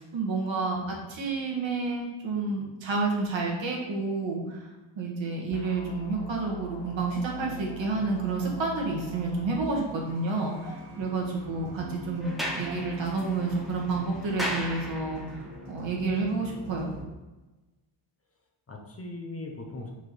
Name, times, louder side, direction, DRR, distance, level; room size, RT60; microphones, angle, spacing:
voice 1, 0.0-4.7 5.0-16.9, right 3 dB, 65° right, -1 dB, 1.8 m, -30 dB
sound 1, 5.5-9.6, right 1 dB, 70° left, 0.6 m, -42 dB
sound 2, 6.8-17.0, right 1 dB, 85° right, 1.8 m, -45 dB
voice 2, 11.5-11.8 18.7-19.9, left 2 dB, 30° left, 0 dB, 1.0 m, -40 dB
Sliding door, 12.2-15.5, equal, ahead, 0.9 m, -36 dB
5.0 x 4.6 x 4.7 m, 1.1 s
cardioid pair, 115°, 48 cm